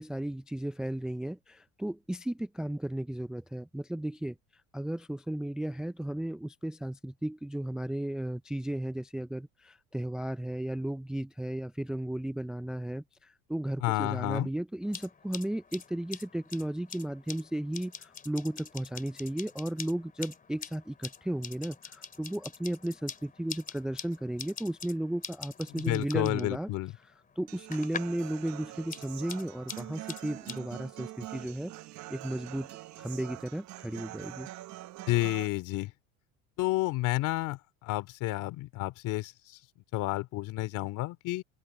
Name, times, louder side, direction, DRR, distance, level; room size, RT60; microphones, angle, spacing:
voice 1, 0.0-4.4 4.7-26.7 27.4-31.7 32.1-34.5, right 1 dB, ahead, 0.4 m, -34 dB
voice 2, 13.8-14.5 25.8-26.9 35.1-35.9 36.6-39.6 39.9-41.4, left 18 dB, 60° left, 2.7 m, -30 dB
sound 1, 14.8-28.3 28.5-30.6, left 6 dB, 25° left, 3.2 m, -45 dB
Human voice / Acoustic guitar, 27.5-35.5, right 16 dB, 55° right, 1.2 m, -44 dB
open air
supercardioid pair, 110°, 35 cm